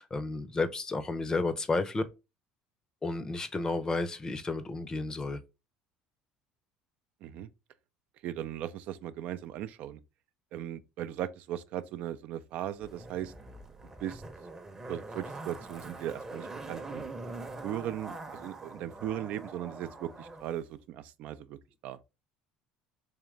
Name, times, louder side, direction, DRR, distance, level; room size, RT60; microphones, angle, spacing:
voice 1, 0.0-2.0 3.0-5.4, left 3 dB, 25° left, 0.6 m, -32 dB
voice 2, 8.2-10.0 10.5-13.3 14.0-14.2 14.9-17.0 17.6-22.0, right 11 dB, 65° right, 0.3 m, -38 dB
Zipper (clothing), 12.8-20.4 20.7-20.8, right 2 dB, 20° right, 0.7 m, -43 dB
3.7 x 2.9 x 3.2 m
supercardioid pair, 90°, 3 cm